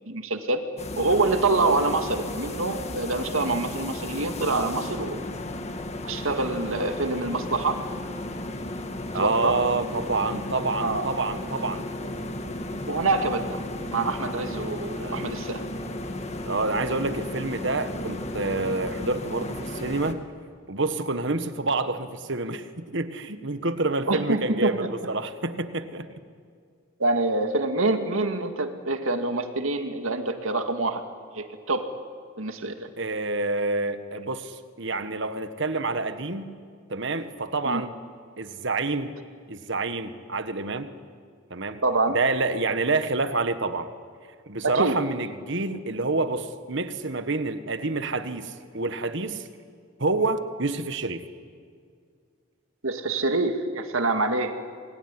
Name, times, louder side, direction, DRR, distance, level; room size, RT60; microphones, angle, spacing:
voice 1, 0.1-0.6 1.0-5.2 6.0-7.8 9.2-9.6 10.8-11.1 12.9-13.6 13.9-15.6 24.1-24.9 27.0-31.0 31.3-31.9 32.4-32.9 37.7-37.8 41.8-42.2 44.6-45.0 52.8-54.5, right 2 dB, 75° right, 6 dB, 2.1 m, -26 dB
sound 1, 0.8-20.1, left 1 dB, 30° left, 1.8 m, -34 dB
voice 2, 9.1-11.8 15.0-15.3 16.5-20.2 20.7-26.1 33.0-36.5 36.9-37.9 38.4-39.1 39.5-40.9 41.5-41.8 42.1-43.9 44.5-49.5 50.0-51.2, right 3 dB, 55° right, 10 dB, 1.5 m, -28 dB
28.0 x 21.0 x 9.8 m, 2.1 s
head